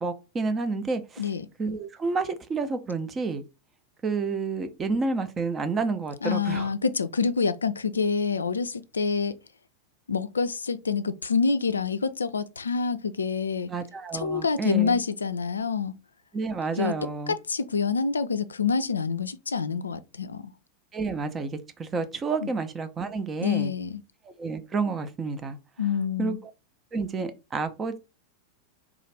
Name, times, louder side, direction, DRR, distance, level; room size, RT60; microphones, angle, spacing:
voice 1, 0.0-1.2 1.6-3.4 4.0-6.7 13.7-15.0 16.3-17.3 20.9-23.7 24.2-25.6 26.2-26.3 26.9-28.0, right 4 dB, 20° right, 0.5 m, -30 dB
voice 2, 6.2-9.4 10.1-13.7 14.1-15.9 16.8-16.9 17.3-20.5 22.4-22.5 23.4-24.0 25.8-26.4, left 5 dB, 75° left, 0.3 m, -27 dB
3.5 x 2.4 x 3.2 m
figure-of-eight pair, 90°, 0 cm